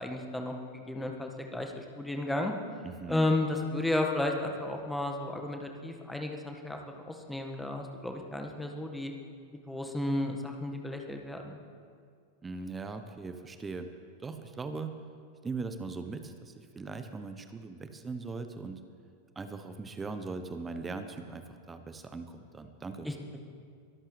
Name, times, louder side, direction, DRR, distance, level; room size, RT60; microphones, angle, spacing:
voice 1, 0.0-2.5 3.1-6.8 7.1-9.1 9.7-11.6 23.1-23.2, left 2 dB, 5° left, 2 dB, 1.7 m, -33 dB
voice 2, 2.8-3.3 12.4-13.9 14.2-14.9 15.4-18.8 19.3-23.1, right 4 dB, 15° right, 8 dB, 1.0 m, -40 dB
23.0 x 13.5 x 3.3 m, 2.2 s
figure-of-eight pair, 90°, 0 cm